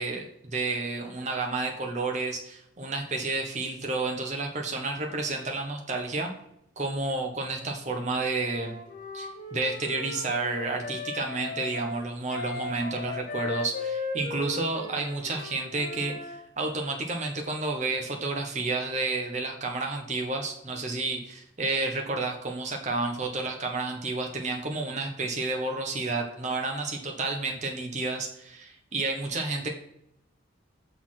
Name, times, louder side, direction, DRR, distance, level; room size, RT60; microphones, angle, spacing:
voice 1, 0.0-6.3 6.8-8.8 9.1-29.7, right 3 dB, 35° right, 2 dB, 1.0 m, -31 dB
Wind instrument woodwind instrument, 8.4-16.4, left 3 dB, 40° left, 1.8 m, -37 dB
6.9 x 4.2 x 5.8 m, 0.77 s
head